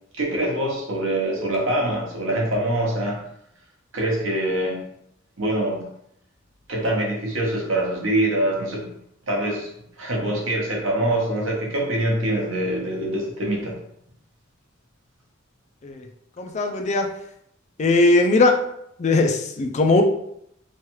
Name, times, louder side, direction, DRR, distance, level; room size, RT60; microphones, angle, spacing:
voice 1, 0.2-3.2 3.9-4.8 5.4-5.9 6.7-9.0 9.3-9.7 10.0-13.7, right 1 dB, 80° right, -2 dB, 0.9 m, -24 dB
voice 2, 16.4-17.1 17.8-18.5 19.0-20.0, left 2 dB, 35° left, 4 dB, 0.4 m, -19 dB
3.1 x 2.3 x 2.9 m, 0.74 s
head